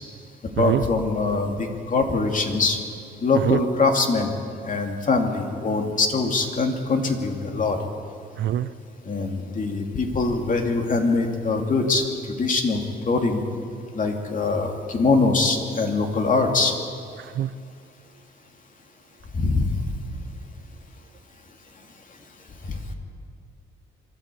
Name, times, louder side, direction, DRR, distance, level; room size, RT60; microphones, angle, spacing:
voice 1, 0.6-2.8 3.2-4.3 4.6-7.8 9.0-12.1 12.4-12.8 13.1-13.4 13.9-16.7 19.3-19.8 22.6-22.9, left 3 dB, 40° left, 3 dB, 2.7 m, -23 dB
voice 2, 8.4-8.7 17.3-17.5, right 12 dB, 70° right, 15 dB, 0.7 m, -23 dB
24.5 x 12.5 x 8.5 m, 2.4 s
cardioid pair, 90°, 20 cm